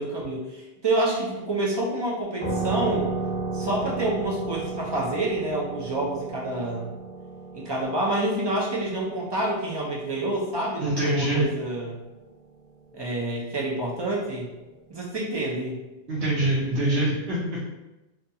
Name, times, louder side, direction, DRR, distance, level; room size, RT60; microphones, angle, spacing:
voice 1, 0.0-3.1 3.5-6.9 7.5-12.0 12.9-14.5 14.9-15.8, right 2 dB, 35° right, -4 dB, 0.4 m, -28 dB
sound 1, 2.4-11.6, right 3 dB, 10° left, 1.1 m, -34 dB
voice 2, 10.8-11.5 16.1-17.6, right 1 dB, 70° right, -7 dB, 0.9 m, -24 dB
2.5 x 2.3 x 2.7 m, 1.0 s
omnidirectional pair, 1.1 m